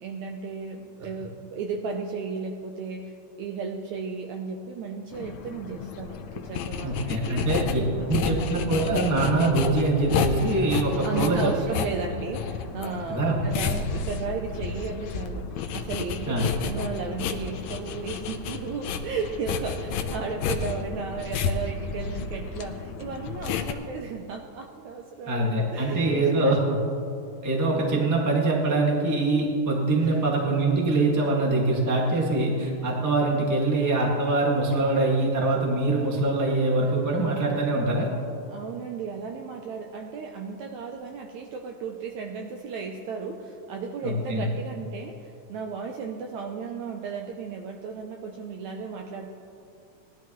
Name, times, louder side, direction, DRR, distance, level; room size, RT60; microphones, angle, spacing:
voice 1, 0.0-7.4 7.8-8.4 11.0-26.6 30.0-30.2 38.5-49.3, right 5 dB, 80° right, 2 dB, 1.7 m, -35 dB
sound 1, 5.1-23.7, left 6 dB, 90° left, 1.5 m, -31 dB
voice 2, 6.8-7.8 8.1-11.5 13.1-13.4 16.3-16.4 25.3-26.6 27.4-38.1 44.0-44.5, right 2 dB, 15° right, -3 dB, 0.5 m, -24 dB
19.0 x 12.0 x 3.1 m, 2.5 s
omnidirectional pair, 4.0 m